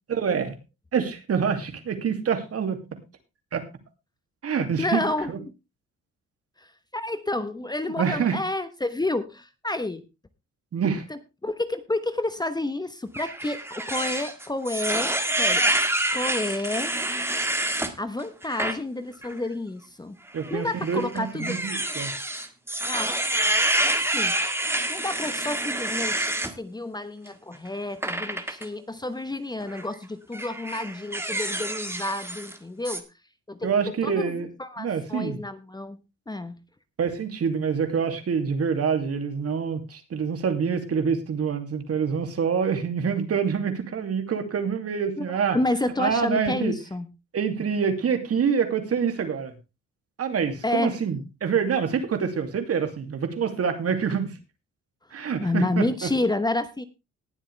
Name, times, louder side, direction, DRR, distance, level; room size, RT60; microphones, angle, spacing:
voice 1, 0.1-0.6 0.9-2.8 3.5-3.6 4.4-5.4 8.0-8.4 10.7-11.0 20.3-22.1 33.6-34.5 34.8-35.4 37.0-45.6 46.0-46.7 47.3-49.5 50.2-54.4 55.1-56.1, right 6 dB, 50° right, 7 dB, 2.6 m, -26 dB
voice 2, 4.8-5.3 6.6-10.0 11.1-15.6 16.1-16.9 18.0-20.2 20.5-21.6 22.8-23.2 23.8-24.4 24.9-33.0 33.5-33.7 34.0-34.3 34.6-36.0 36.3-36.6 45.2-45.3 45.5-47.1 50.6-50.9 55.4-56.9, left 2 dB, 15° left, 11 dB, 1.1 m, -30 dB
sound 1, 13.1-17.9 18.4-18.8 19.2-19.3 20.4-26.5 28.0-28.7 29.6-29.9 30.3-32.6 32.9-33.0, right 1 dB, 10° right, 1.8 m, -27 dB
19.0 x 7.6 x 3.4 m, 0.27 s
cardioid pair, 90°, 30 cm